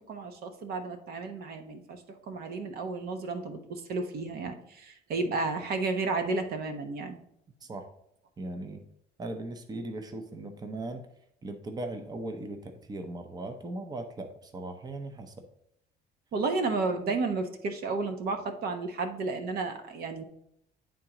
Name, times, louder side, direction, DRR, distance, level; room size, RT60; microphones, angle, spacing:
voice 1, 0.0-7.2 16.3-20.2, right 3 dB, 65° right, 7 dB, 1.0 m, -32 dB
voice 2, 8.4-8.8 9.2-11.0 11.4-15.3, right 2 dB, 25° right, 6 dB, 0.7 m, -38 dB
10.0 x 3.7 x 2.9 m, 0.76 s
cardioid pair, 110°, 17 cm